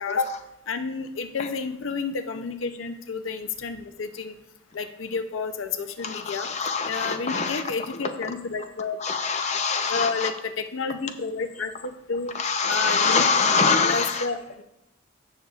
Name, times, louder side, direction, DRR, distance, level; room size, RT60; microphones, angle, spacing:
voice 1, 0.7-4.3 4.7-6.5 6.9-9.0 9.9-12.3 12.7-13.3 13.8-14.4, left 4 dB, 80° left, 8 dB, 0.6 m, -30 dB
voice 2, 6.0-7.6 9.0-10.3 12.3-14.3, left 5 dB, 35° left, 6 dB, 0.6 m, -24 dB
16.0 x 6.5 x 2.4 m, 0.85 s
head